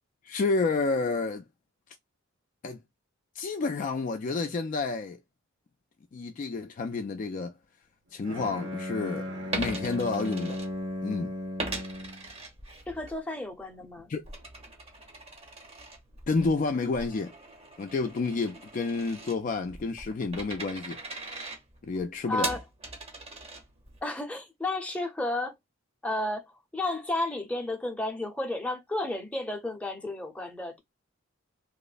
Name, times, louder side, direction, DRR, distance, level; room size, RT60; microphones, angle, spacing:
voice 1, 0.2-1.4 2.6-2.8 3.4-5.2 6.1-7.5 8.1-10.6 11.0-11.3 14.1-14.2 16.3-17.3 17.8-21.0 21.8-22.5, left 3 dB, 40° left, 0.3 m, -30 dB
Bowed string instrument, 8.2-12.3, left 1 dB, 60° right, 1.0 m, -36 dB
Coin (dropping), 9.4-11.1 11.6-13.2 13.5-24.0, right 2 dB, 30° right, 0.8 m, -40 dB
voice 2, 12.9-14.1 22.3-22.6 24.0-25.6 26.0-26.5 26.7-30.8, left 2 dB, 5° left, 0.6 m, -32 dB
3.0 x 2.0 x 2.4 m
head